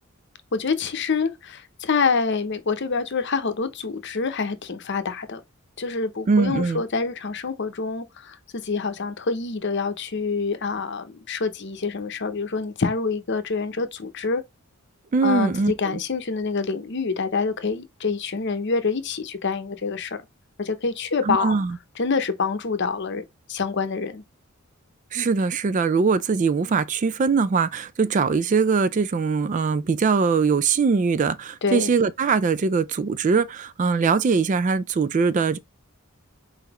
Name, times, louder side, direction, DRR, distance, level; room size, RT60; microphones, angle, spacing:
voice 1, 0.5-5.4 5.8-14.4 15.2-20.2 20.6-21.6 22.0-24.2 31.6-31.9, left 4 dB, 55° left, 0.8 m, -26 dB
voice 2, 6.3-6.8 15.1-16.0 21.2-21.8 25.1-35.6, right 5 dB, 35° right, 0.3 m, -22 dB
4.3 x 4.0 x 2.9 m
head